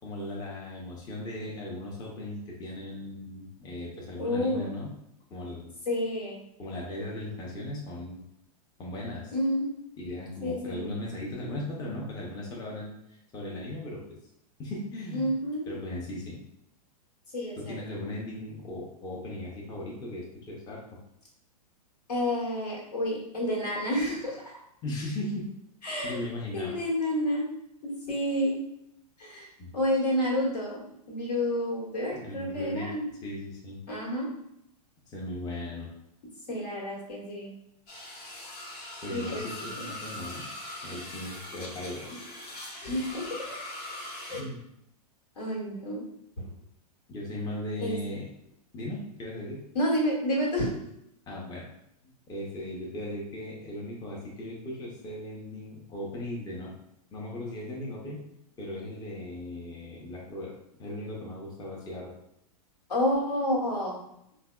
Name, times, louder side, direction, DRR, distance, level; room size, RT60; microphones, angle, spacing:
voice 1, 0.0-4.9 5.3-5.7 6.6-8.2 8.8-9.3 10.0-14.0 14.6-15.3 15.7-16.4 17.6-21.0 24.8-25.5 26.0-26.8 29.6-29.7 32.1-32.9 33.2-33.8 35.1-35.9 39.0-40.4 40.8-42.2 44.3-44.6 47.1-48.3 48.7-49.6 51.3-51.6 52.3-56.7 57.1-58.2 58.6-60.5 60.8-62.1, left 1 dB, 20° left, -3 dB, 0.6 m, -37 dB
voice 2, 4.2-4.7 5.9-6.4 9.3-9.7 10.4-10.9 15.1-15.7 17.3-18.0 22.1-24.4 25.8-26.2 26.5-27.5 27.8-28.6 29.2-29.5 29.7-33.1 33.9-34.3 36.5-37.5 39.1-39.5 39.7-39.9 42.8-43.5 44.2-44.5 45.4-46.0 46.4-46.5 47.8-47.9 49.7-50.8 62.9-64.0, equal, 80° left, -4 dB, 1.2 m, -29 dB
sound 1, 37.9-44.4, left 1 dB, 45° left, 0.9 m, -41 dB
3.3 x 2.2 x 2.2 m, 0.80 s
hypercardioid pair, 120°, 20 cm